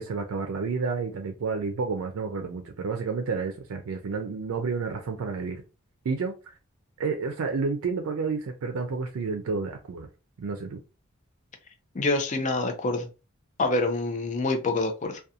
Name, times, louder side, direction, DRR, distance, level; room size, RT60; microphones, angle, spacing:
voice 1, 0.0-5.6 6.0-6.6 7.0-10.1 10.4-10.8, right 4 dB, 80° right, 0.4 m, -30 dB
voice 2, 11.9-13.1 13.6-15.2, left 2 dB, 35° left, 0.5 m, -26 dB
2.4 x 2.2 x 2.7 m
head